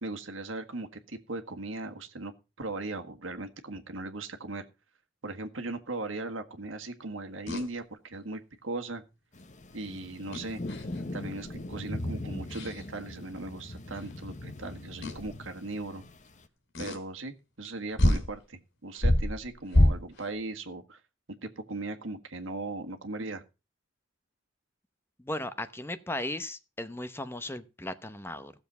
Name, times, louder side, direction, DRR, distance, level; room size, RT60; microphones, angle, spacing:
voice 1, 0.0-4.7 5.2-9.0 9.7-10.6 11.1-16.0 16.8-21.0 21.4-23.4, right 2 dB, 80° right, 1.7 m, -38 dB
sound 1, 7.5-7.7 10.3-11.0 11.4-11.7 12.5-12.8 14.0-14.1 15.0-15.3 16.7-17.0 17.6-17.7 18.0-18.3 18.9-20.3, left 1 dB, 70° left, 3.3 m, -26 dB
sound 2, 9.3-16.5, left 1 dB, 40° left, 1.0 m, -40 dB
voice 2, 25.2-28.5, left 1 dB, 10° left, 0.8 m, -36 dB
16.0 x 7.2 x 5.4 m
head